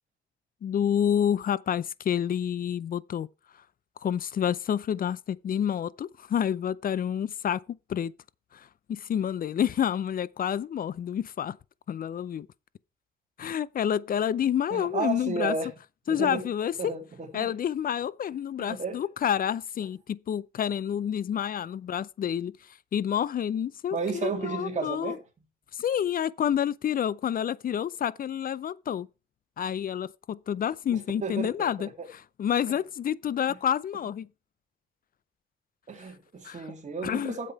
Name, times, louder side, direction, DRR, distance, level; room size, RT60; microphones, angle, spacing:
voice 1, 0.6-3.3 4.0-7.6 7.9-8.1 8.5-11.6 11.9-12.5 13.4-15.5 16.1-16.9 17.3-22.5 22.9-25.2 25.7-29.1 29.6-34.3 36.4-36.7 37.0-37.4, left 9 dB, 45° left, 0.6 m, -29 dB
voice 2, 14.7-15.7 16.1-16.5 16.8-17.5 18.6-19.0 23.9-25.2 27.7-27.9 30.9-32.1 33.5-33.6 35.9-37.5, right 4 dB, 35° right, 2.9 m, -33 dB
8.7 x 7.7 x 4.7 m
cardioid pair, 90°, 20 cm